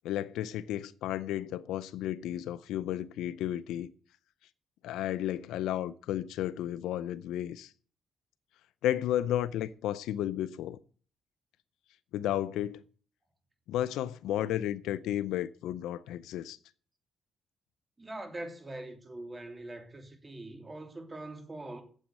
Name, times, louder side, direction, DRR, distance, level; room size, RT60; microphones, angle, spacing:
voice 1, 0.0-3.9 4.8-7.7 8.8-10.8 12.1-12.8 13.7-16.6, left 12 dB, 90° left, 0.5 m, -33 dB
voice 2, 18.0-21.8, right 1 dB, 20° right, 2.7 m, -43 dB
9.0 x 7.4 x 8.2 m
cardioid pair, 90°, 0 cm